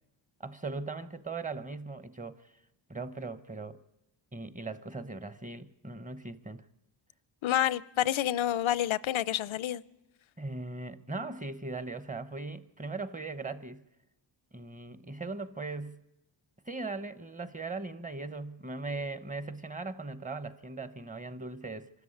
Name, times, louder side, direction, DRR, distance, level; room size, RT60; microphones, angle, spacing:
voice 1, 0.4-2.5 2.9-3.8 4.3-6.6 10.4-13.8 14.5-16.0 16.7-21.9, right 3 dB, 15° right, 0.9 m, -39 dB
voice 2, 7.4-9.8, left 12 dB, 85° left, 0.6 m, -28 dB
25.0 x 13.0 x 8.6 m
wide cardioid pair, 95°, 46 cm